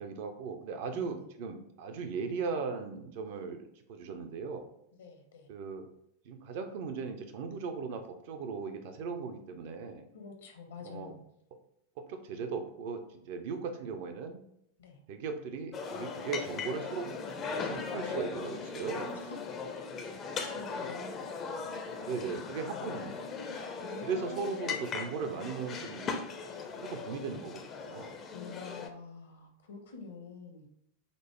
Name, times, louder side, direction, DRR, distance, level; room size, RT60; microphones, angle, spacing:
voice 1, 0.0-4.7 5.5-5.9 6.2-10.1 10.8-11.1 12.0-14.4 15.1-17.1 17.5-19.1 22.0-23.3 24.0-26.3 26.7-28.2, right 5 dB, 50° right, 6 dB, 0.5 m, -38 dB
voice 2, 0.9-1.3 5.0-5.5 10.1-11.2 13.5-13.8 14.8-15.0 19.1-19.4 19.9-20.0 20.3-21.1 22.1-22.3 22.7-24.9 28.3-30.7, left 4 dB, 65° left, 3 dB, 0.7 m, -47 dB
sound 1, 15.7-28.9, left 5 dB, 30° left, 0.4 m, -39 dB
5.1 x 2.0 x 3.0 m, 0.76 s
figure-of-eight pair, 90°, 0 cm